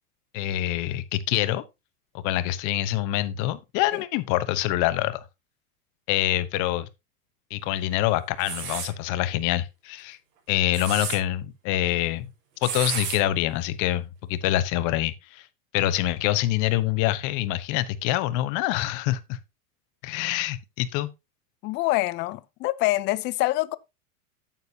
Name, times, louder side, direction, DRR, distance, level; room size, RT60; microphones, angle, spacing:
voice 1, 0.3-1.6 2.2-5.2 6.1-6.9 7.5-10.2 10.5-12.3 12.6-15.5 15.7-19.4 20.0-21.1, left 14 dB, 40° left, 1.0 m, -25 dB
sound 1, 8.4-8.9 10.5-11.2 12.6-13.2, right 7 dB, 65° right, 5.3 m, -31 dB
voice 2, 21.6-23.8, left 19 dB, 25° left, 0.4 m, -25 dB
9.1 x 8.7 x 2.7 m
hypercardioid pair, 125°, 45 cm